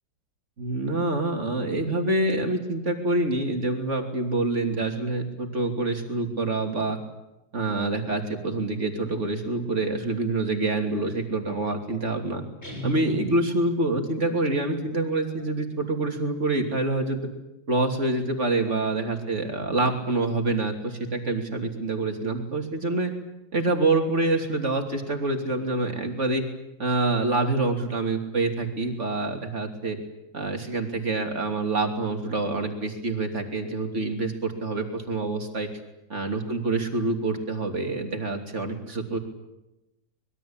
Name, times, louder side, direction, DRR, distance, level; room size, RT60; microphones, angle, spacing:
voice 1, 0.6-7.0 7.5-12.4 12.8-17.2 17.7-23.1 23.5-26.4 26.8-30.0 30.3-35.7 36.1-39.2, right 2 dB, 35° right, 4 dB, 3.2 m, -26 dB
Guitar, 12.6-13.9, right 3 dB, 30° left, 7.7 m, -37 dB
25.5 x 21.5 x 8.9 m, 0.96 s
omnidirectional pair, 2.2 m